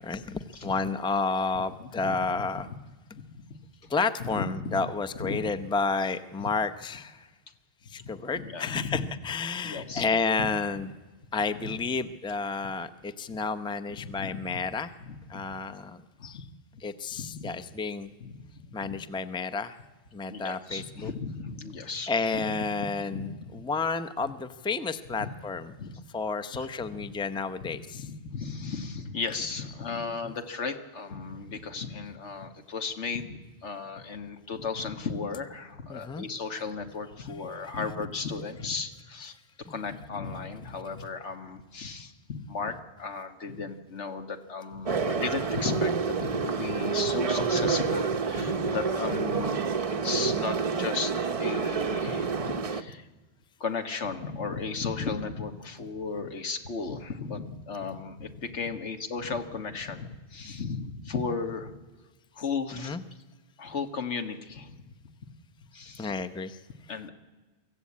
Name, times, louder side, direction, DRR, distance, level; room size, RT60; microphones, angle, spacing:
voice 1, 0.0-2.7 3.9-7.3 7.9-10.9 11.3-14.9 15.3-16.4 16.8-18.1 18.7-19.8 20.1-21.1 22.1-25.7 26.1-28.0 30.2-30.3 35.9-36.2 39.7-39.8 62.7-63.0 66.0-66.6, left 4 dB, 5° left, 9 dB, 0.6 m, -31 dB
voice 2, 1.8-2.2 3.1-3.4 3.8-3.9 4.2-4.9 5.2-5.5 6.4-6.5 8.0-8.1 8.3-9.0 9.6-10.1 11.6-11.7 13.3-13.4 14.0-14.3 15.0-15.5 16.2-16.5 17.1-17.5 18.2-18.5 18.8-18.9 20.3-22.5 23.1-23.6 25.2-25.3 25.8-26.0 26.5-26.7 26.9-27.1 27.7-39.4 39.7-49.7 50.0-51.1 51.4-53.1 53.6-61.8 62.3-63.0 63.6-64.9 65.7-66.1 66.9-67.1, left 4 dB, 80° left, 7 dB, 1.8 m, -35 dB
sound 1, 44.9-52.8, right 5 dB, 35° right, 0.7 m, -28 dB
24.0 x 15.0 x 8.5 m, 1.2 s
omnidirectional pair, 1.2 m